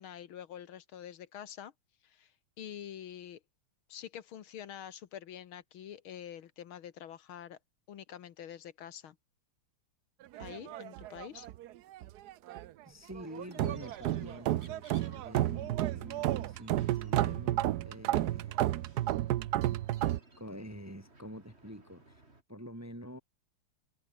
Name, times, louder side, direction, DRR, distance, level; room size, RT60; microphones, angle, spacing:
voice 1, 0.0-1.7 2.0-2.3 2.6-3.4 3.9-7.6 7.9-9.2 10.4-11.5, left 10 dB, 70° left, 1.9 m, -46 dB
sound 1, 10.3-11.7 11.9-12.7 13.1-20.2, right 14 dB, 80° right, 0.9 m, -32 dB
voice 2, 12.8-18.8 20.4-22.2 22.5-23.2, equal, 10° right, 1.4 m, -47 dB
sound 2, 13.2-22.4, right 2 dB, 30° right, 4.1 m, -60 dB
omnidirectional pair, 2.4 m